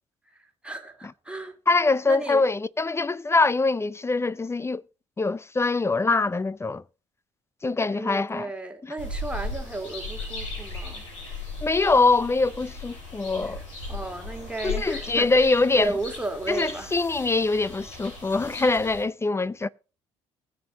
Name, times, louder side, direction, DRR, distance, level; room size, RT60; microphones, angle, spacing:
voice 1, 0.4-1.5 2.1-2.5 7.9-11.1 13.5-13.6 13.9-15.3 15.7-16.9, right 2 dB, 5° right, 2.7 m, -34 dB
voice 2, 1.7-4.8 5.2-6.8 7.6-8.5 11.6-13.6 14.6-15.9 16.5-19.7, left 3 dB, 15° left, 0.5 m, -23 dB
sound 1, 9.0-19.0, left 2 dB, 75° left, 5.9 m, -37 dB
19.5 x 7.4 x 3.9 m
figure-of-eight pair, 50°, 15 cm